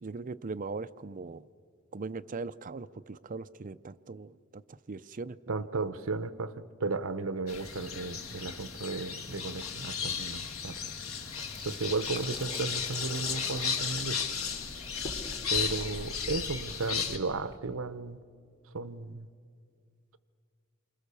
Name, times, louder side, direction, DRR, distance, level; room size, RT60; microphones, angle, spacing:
voice 1, 0.0-1.4 1.9-5.6, right 3 dB, 40° right, 13 dB, 0.5 m, -40 dB
voice 2, 5.5-10.8 11.6-14.2 15.5-18.2 18.7-19.3, right 3 dB, 70° right, 14 dB, 0.8 m, -34 dB
sound 1, 7.5-17.2, left 6 dB, 90° left, 1.7 m, -35 dB
Water tap faucet / Sink (filling or washing), 11.1-17.6, left 1 dB, 25° left, 2.7 m, -47 dB
28.5 x 25.0 x 6.9 m, 2.3 s
head